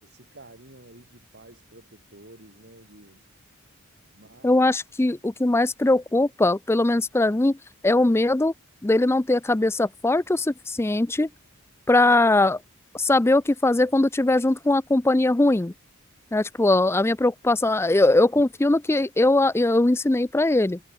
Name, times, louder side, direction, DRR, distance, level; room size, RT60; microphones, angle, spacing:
voice 1, 0.0-3.3 4.1-4.7 17.6-17.7 18.3-18.5, right 1 dB, 50° right, 5.4 m, -50 dB
voice 2, 4.4-7.6 7.8-8.5 8.8-11.3 11.9-12.6 13.0-15.7 16.3-20.8, left 2 dB, 10° left, 0.4 m, -20 dB
head